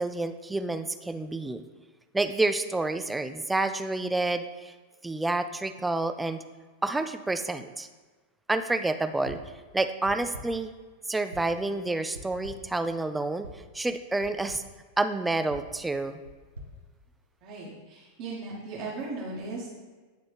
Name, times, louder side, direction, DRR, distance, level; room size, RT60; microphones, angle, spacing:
voice 1, 0.0-1.6 2.1-4.7 5.0-6.4 6.8-7.9 8.5-9.4 9.7-10.7 11.1-13.5 13.7-14.6 15.0-16.2, right 2 dB, 10° right, 9 dB, 0.3 m, -29 dB
sound 1, 9.2-9.6 10.0-10.7 11.3-11.7 12.1-12.8 13.4-13.7 14.2-14.7 15.5-17.6, equal, 75° right, 0.8 m, -46 dB
voice 2, 17.4-19.7, right 3 dB, 45° right, -7 dB, 1.5 m, -37 dB
9.2 x 3.8 x 3.4 m, 1.4 s
figure-of-eight pair, 90°, 0 cm